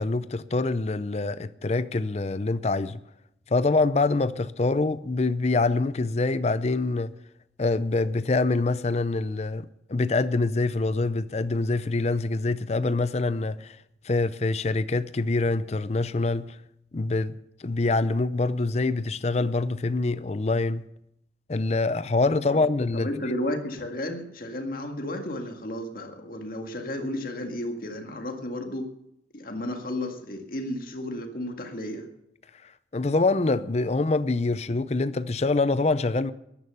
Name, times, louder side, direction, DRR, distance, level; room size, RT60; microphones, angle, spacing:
voice 1, 0.0-3.0 3.5-7.1 7.6-13.8 14.0-16.5 16.9-17.3 17.6-20.8 21.5-23.1 32.9-36.3, left 3 dB, 35° left, 0.5 m, -25 dB
voice 2, 22.9-28.9 29.3-32.1, left 1 dB, 55° left, 1.9 m, -33 dB
14.0 x 11.0 x 6.8 m
head